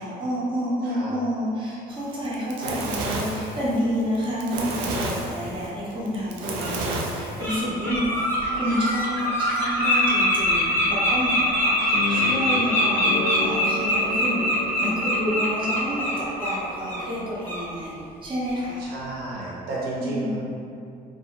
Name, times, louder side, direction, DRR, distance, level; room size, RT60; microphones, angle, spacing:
voice 1, 0.0-8.2 8.5-18.8 20.0-20.4, equal, 30° right, -7 dB, 0.6 m, -29 dB
Fire, 2.1-7.6, right 2 dB, 90° right, 0.4 m, -30 dB
Bird, 5.7-5.8 6.6-6.7 7.2-7.6 7.8-16.6 16.9-17.0 17.4-17.6, equal, 10° left, 0.7 m, -23 dB
sound 1, 11.9-17.0, left 2 dB, 50° left, 0.5 m, -32 dB
voice 2, 12.1-12.7 18.8-20.4, right 2 dB, 70° right, -7 dB, 0.8 m, -33 dB
2.4 x 2.1 x 2.8 m, 2.5 s
cardioid pair, 110°, 17 cm